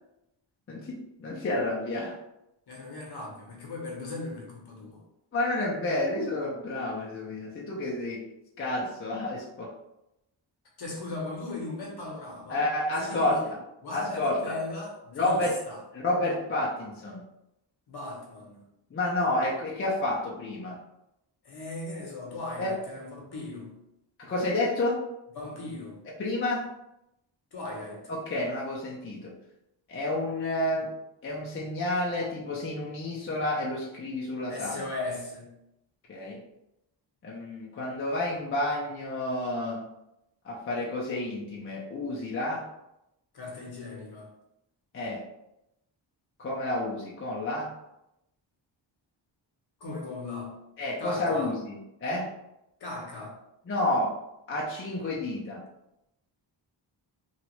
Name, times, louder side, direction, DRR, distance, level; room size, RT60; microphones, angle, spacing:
voice 1, 0.7-2.2 5.3-8.2 8.6-9.7 12.5-13.6 13.9-14.6 15.1-15.6 15.9-17.2 18.9-20.8 22.6-22.7 24.2-25.0 26.2-26.7 28.1-29.3 29.9-30.9 31.2-34.8 36.1-36.4 37.2-39.8 40.4-42.7 44.9-45.2 46.4-47.8 50.8-52.3 53.7-54.2 54.5-55.7, left 1 dB, 30° left, -4 dB, 0.5 m, -30 dB
voice 2, 2.7-5.0 10.8-12.6 13.0-13.5 13.8-15.8 17.9-18.6 21.4-23.8 25.4-26.0 27.5-28.1 34.5-35.5 43.3-44.3 49.8-50.6 51.0-51.5 52.8-53.3, left 2 dB, 55° left, -1 dB, 0.9 m, -38 dB
3.0 x 2.4 x 3.0 m, 0.86 s
wide cardioid pair, 155°, 45 cm